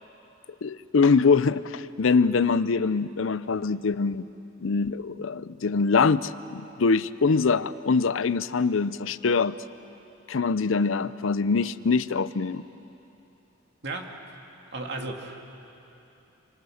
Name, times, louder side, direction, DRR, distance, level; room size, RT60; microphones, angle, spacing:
voice 1, 0.6-4.3 4.6-9.6 10.3-12.6, left 4 dB, 85° left, 15 dB, 0.6 m, -23 dB
voice 2, 13.8-14.1 14.7-15.4, right 2 dB, 60° right, 2 dB, 2.4 m, -34 dB
27.5 x 25.0 x 6.5 m, 2.9 s
head